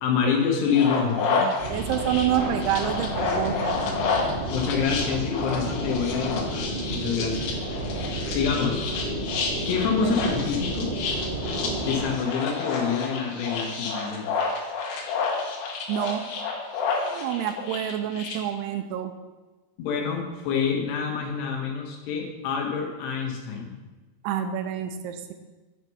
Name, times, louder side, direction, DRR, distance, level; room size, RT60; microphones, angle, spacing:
voice 1, 0.0-1.6 4.5-7.6 8.3-8.8 9.7-10.9 11.8-14.3 19.8-23.8, left 6 dB, 90° left, 1 dB, 3.4 m, -27 dB
sound 1, 0.7-18.3, left 4 dB, 70° left, 3.0 m, -30 dB
sound 2, 1.6-12.1, right 2 dB, 35° right, 1.0 m, -32 dB
voice 2, 1.7-3.8 10.0-10.1 11.6-11.9 15.9-16.2 17.0-19.1 24.2-25.3, right 10 dB, 85° right, 7 dB, 2.6 m, -28 dB
9.2 x 4.6 x 5.5 m, 1.2 s
omnidirectional pair, 4.7 m